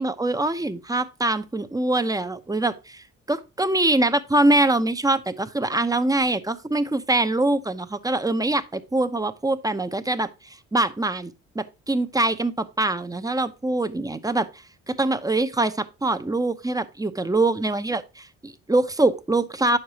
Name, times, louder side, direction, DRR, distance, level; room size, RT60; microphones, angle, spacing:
voice 1, 0.0-14.5 14.9-19.8, right 2 dB, 10° right, 0.8 m, -24 dB
9.2 x 6.6 x 2.9 m
cardioid pair, 90°, 30 cm